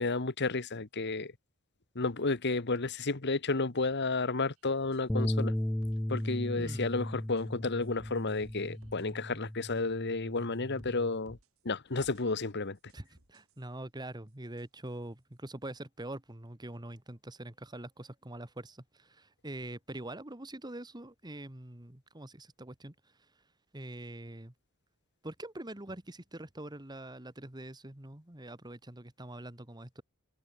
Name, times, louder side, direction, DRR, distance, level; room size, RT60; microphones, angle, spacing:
voice 1, 0.0-1.3 1.9-5.5 6.1-11.4 11.6-12.8, left 3 dB, 50° left, 1.4 m, -32 dB
sound 1, 4.6-4.7 4.9-5.0 5.4-5.5 5.8-6.2 6.6-7.0 7.4-7.5 7.8-9.1 9.8-9.9 10.4-11.0 11.3-11.6 12.0-12.2 12.8-13.6 14.6-14.7, right 1 dB, 75° right, 5.6 m, -58 dB
Bass guitar, 5.1-11.3, left 1 dB, 5° left, 0.3 m, -36 dB
voice 2, 6.5-6.9 12.9-22.9 23.7-24.5 25.2-30.0, right 1 dB, 20° right, 1.7 m, -44 dB
head